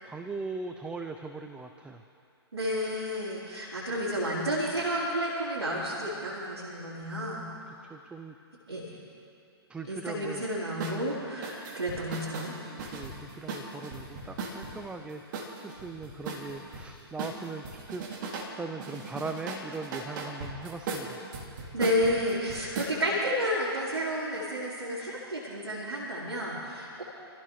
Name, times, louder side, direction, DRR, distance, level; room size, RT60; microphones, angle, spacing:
voice 1, 0.0-2.0 7.8-8.4 9.7-10.4 12.9-18.0 18.6-21.2, right 3 dB, 5° right, 6 dB, 0.6 m, -39 dB
voice 2, 2.5-7.4 8.7-9.0 9.9-12.6 21.7-27.0, equal, 80° right, -8 dB, 4.2 m, -31 dB
sound 1, 10.8-11.0 11.4-14.8 15.3-16.9 17.2-18.5 18.8-23.0, right 3 dB, 45° right, 2.8 m, -37 dB
28.5 x 15.5 x 3.3 m, 2.5 s
figure-of-eight pair, 120°, 14 cm